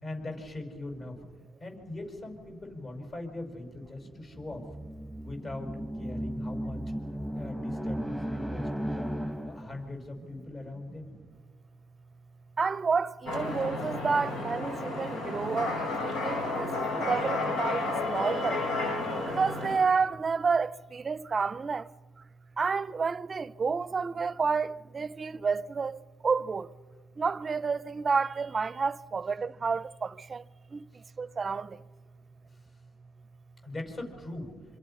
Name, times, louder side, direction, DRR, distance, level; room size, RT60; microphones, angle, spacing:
voice 1, 0.0-1.2 1.6-4.7 5.2-6.9 7.4-11.1 33.6-34.6, left 2 dB, 40° left, 5.7 m, -41 dB
sound 1, 4.3-9.9, equal, 5° left, 1.3 m, -35 dB
voice 2, 12.6-21.9 22.6-26.7 27.2-30.4 30.7-31.8, right 5 dB, 35° right, 0.6 m, -30 dB
sound 2, 13.3-19.8, left 2 dB, 90° left, 3.5 m, -32 dB
27.0 x 26.0 x 5.6 m
cardioid pair, 90°, 0 cm